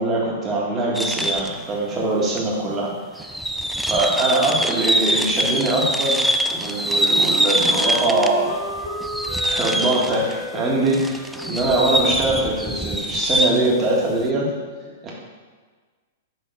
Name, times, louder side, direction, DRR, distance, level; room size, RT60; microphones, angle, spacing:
voice 1, 0.0-2.9 3.2-3.3 3.9-8.6 9.4-14.5 14.8-15.1, right 2 dB, 25° right, -3 dB, 1.6 m, -22 dB
sound 1, 1.0-1.6 2.4-2.5 3.2-8.5 8.8-10.4 10.9-13.7, equal, ahead, 0.3 m, -23 dB
Wind instrument woodwind instrument, 6.7-13.5, right 1 dB, 60° left, 2.0 m, -34 dB
6.2 x 3.6 x 5.4 m, 1.5 s
hypercardioid pair, 125°, 0 cm